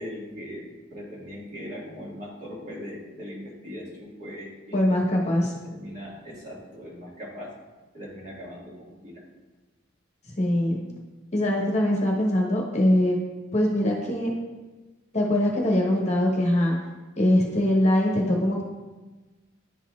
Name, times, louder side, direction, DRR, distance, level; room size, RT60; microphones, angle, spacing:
voice 1, 0.0-4.9 5.4-7.6 7.9-9.2, equal, 40° right, -5 dB, 1.8 m, -40 dB
voice 2, 4.7-5.5 10.4-10.8 11.3-13.2 13.5-14.3 15.1-16.8 17.2-18.6, left 1 dB, 35° left, -1 dB, 1.0 m, -22 dB
11.0 x 4.1 x 2.4 m, 1.2 s
head